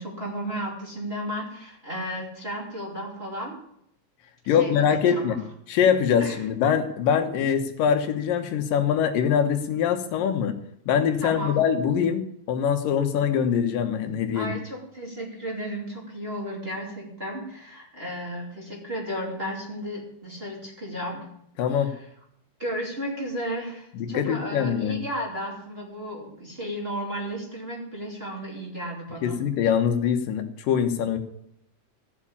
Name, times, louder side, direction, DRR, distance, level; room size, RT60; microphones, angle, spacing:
voice 1, 0.0-3.6 4.4-5.4 6.2-6.4 11.2-11.6 14.3-21.3 21.7-22.1 22.6-29.5, equal, 20° right, -2 dB, 2.7 m, -34 dB
voice 2, 4.5-5.4 5.7-10.6 10.9-14.5 21.6-21.9 24.0-25.0 29.2-31.2, left 8 dB, 75° left, 7 dB, 2.8 m, -23 dB
15.0 x 7.4 x 8.6 m, 0.73 s
omnidirectional pair, 4.0 m